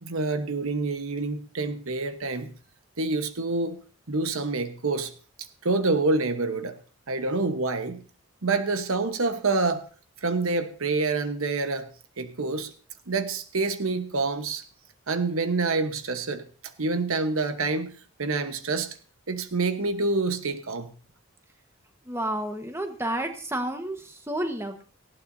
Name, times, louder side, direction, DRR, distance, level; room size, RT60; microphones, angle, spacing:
voice 1, 0.0-2.5 3.0-3.8 4.1-5.1 5.6-6.8 7.1-8.0 8.4-9.9 10.2-11.9 12.2-12.7 13.1-14.6 15.1-16.4 16.8-19.0 19.3-20.9, right 3 dB, 80° right, 9 dB, 1.1 m, -27 dB
voice 2, 22.0-24.8, right 1 dB, 10° right, 5 dB, 1.3 m, -31 dB
18.0 x 16.0 x 2.7 m, 0.38 s
head